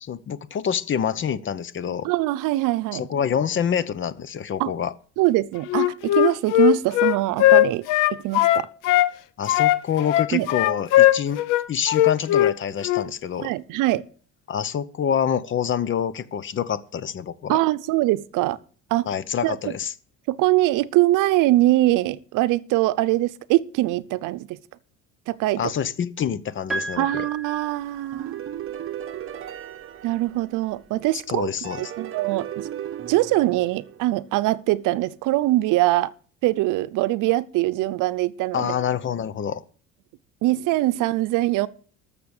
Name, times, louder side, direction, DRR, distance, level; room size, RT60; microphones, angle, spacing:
voice 1, 0.0-2.1 2.9-4.9 9.4-11.4 11.7-13.5 14.5-17.6 19.1-19.9 25.6-27.3 31.3-31.9 38.5-39.6, left 8 dB, 40° left, 0.8 m, -26 dB
voice 2, 2.0-3.1 4.6-4.7 5.2-8.7 10.3-10.5 13.4-14.0 17.5-18.6 18.9-19.1 19.4-19.6 20.3-24.6 25.3-25.7 27.0-28.4 30.0-32.7 33.1-36.1 36.4-38.7 40.4-41.7, right 17 dB, 80° right, 0.7 m, -22 dB
Wind instrument woodwind instrument, 5.7-9.1 9.5-12.6 12.8-13.1, left 15 dB, 85° left, 0.8 m, -18 dB
Piano, 26.7-28.7 30.0-30.1, right 2 dB, ahead, 2.9 m, -34 dB
sound 1, 28.1-31.0 31.6-34.5, right 10 dB, 40° right, 1.0 m, -36 dB
13.0 x 6.9 x 6.5 m
cardioid pair, 125°, 31 cm